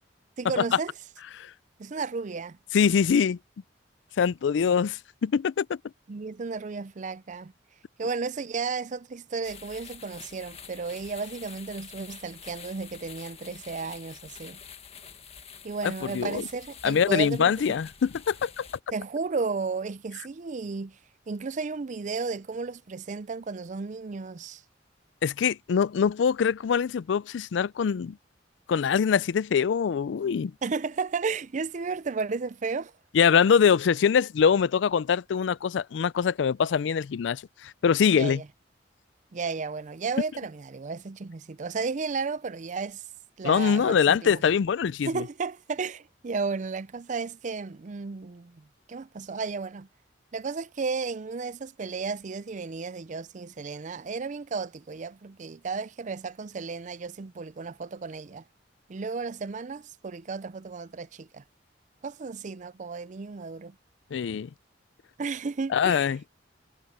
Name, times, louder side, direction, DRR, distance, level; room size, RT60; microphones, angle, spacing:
voice 1, 0.4-0.9 1.8-2.6 6.1-7.5 8.0-14.6 15.6-17.8 18.9-21.0 21.3-24.6 30.6-32.9 38.2-38.5 39.3-43.0 43.4-44.4 45.0-49.9 50.3-58.4 58.9-61.4 62.0-63.8 65.2-66.1, right 4 dB, 40° right, 0.5 m, -33 dB
voice 2, 2.7-3.4 4.2-5.8 15.8-16.4 16.8-18.7 25.2-28.2 28.7-30.5 33.1-38.4 43.4-45.2 64.1-64.5 65.7-66.2, left 7 dB, 75° left, 0.4 m, -23 dB
sound 1, 9.4-18.8, left 7 dB, 35° left, 1.5 m, -47 dB
head